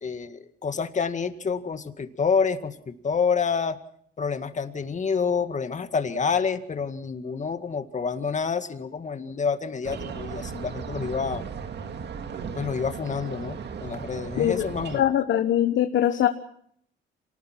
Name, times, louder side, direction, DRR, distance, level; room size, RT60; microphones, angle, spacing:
voice 1, 0.0-3.8 4.2-11.4 12.6-15.1, left 5 dB, 40° left, 9 dB, 2.0 m, -28 dB
sound 1, 9.8-15.0, right 6 dB, 60° right, 2.1 m, -36 dB
voice 2, 14.9-16.3, left 11 dB, 70° left, 8 dB, 1.3 m, -22 dB
26.0 x 19.5 x 6.0 m, 0.65 s
cardioid pair, 90°, 20 cm